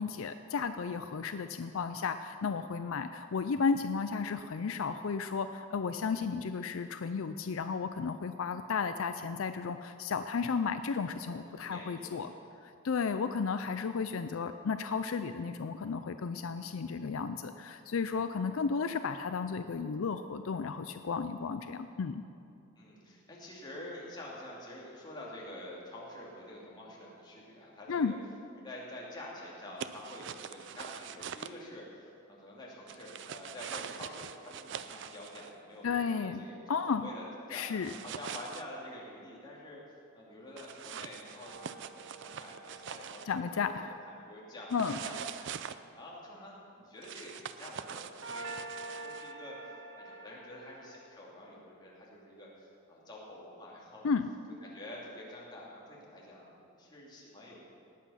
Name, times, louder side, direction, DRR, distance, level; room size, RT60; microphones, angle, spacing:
voice 1, 0.0-12.3 12.8-22.2 27.9-28.1 35.8-36.4 36.7-37.1 37.5-37.9 43.3-43.9 44.7-45.0 54.0-54.3, left 5 dB, 70° left, 10 dB, 0.4 m, -33 dB
voice 2, 11.2-12.4 22.8-28.2 28.6-36.6 36.9-37.7 38.0-43.6 44.1-54.1 54.6-57.6, left 1 dB, 20° left, -5 dB, 2.7 m, -48 dB
sound 1, 29.8-31.5 32.9-35.5 37.8-38.6 40.6-43.4 44.7-45.8 47.0-49.3, right 8 dB, 55° right, 0.4 m, -43 dB
sound 2, 41.4-44.9 48.2-51.1, right 2 dB, 70° right, 1.7 m, -47 dB
19.0 x 8.3 x 5.7 m, 2.6 s
head